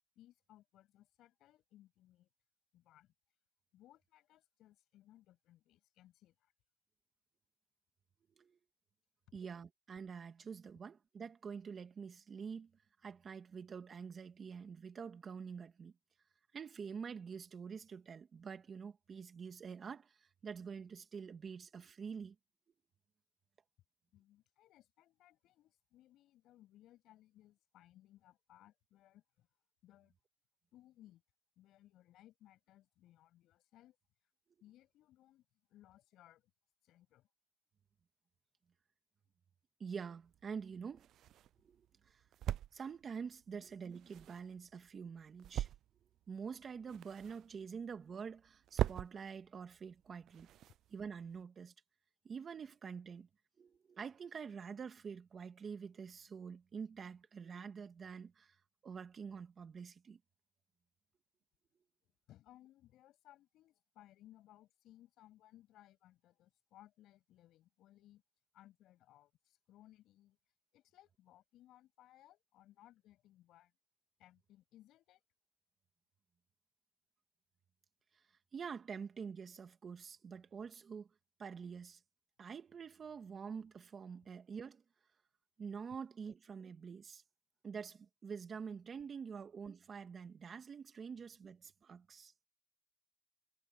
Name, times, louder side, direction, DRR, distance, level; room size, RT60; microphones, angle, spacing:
voice 1, 0.2-2.3 2.7-3.1 3.7-6.5 9.3-9.4 24.1-29.5 29.8-30.1 30.7-31.2 31.6-34.0 34.6-36.5 36.8-37.3 43.5-43.6 62.3-68.2 68.5-70.4 70.7-73.7 74.2-75.2, left 14 dB, 85° left, 7.3 m, -64 dB
voice 2, 9.3-12.7 13.0-15.9 16.5-22.4 39.8-41.1 41.6-42.2 42.7-45.7 46.3-50.5 50.9-51.7 52.2-53.3 53.6-58.6 58.8-60.2 78.5-81.1 81.4-82.0 82.4-84.8 85.6-87.2 87.6-92.3, right 6 dB, 50° right, 2.2 m, -47 dB
sound 1, 40.2-51.4, right 12 dB, 80° right, 0.3 m, -44 dB
cardioid pair, 90°, 0 cm